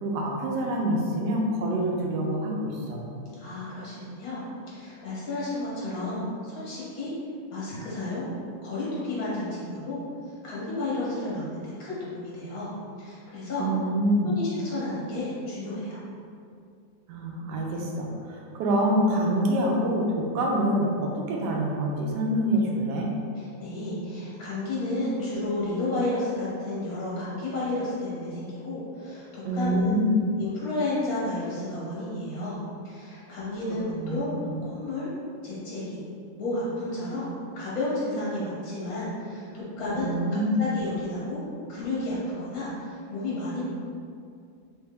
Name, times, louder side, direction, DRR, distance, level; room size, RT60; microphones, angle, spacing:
voice 1, 0.0-3.1 13.6-14.4 17.1-23.1 29.4-30.2 33.7-34.2 34.4-34.6 39.9-40.6, equal, 90° right, -1 dB, 1.2 m, -26 dB
voice 2, 3.4-4.4 4.7-7.1 7.5-8.3 8.6-10.0 10.4-12.7 13.0-13.7 14.2-16.0 23.4-29.9 30.4-32.6 32.8-34.3 34.6-35.1 35.4-36.0 36.4-37.3 37.5-40.1 40.6-41.4 41.7-43.6, left 2 dB, 65° left, -8 dB, 1.6 m, -32 dB
3.3 x 3.0 x 3.4 m, 2.4 s
omnidirectional pair, 1.7 m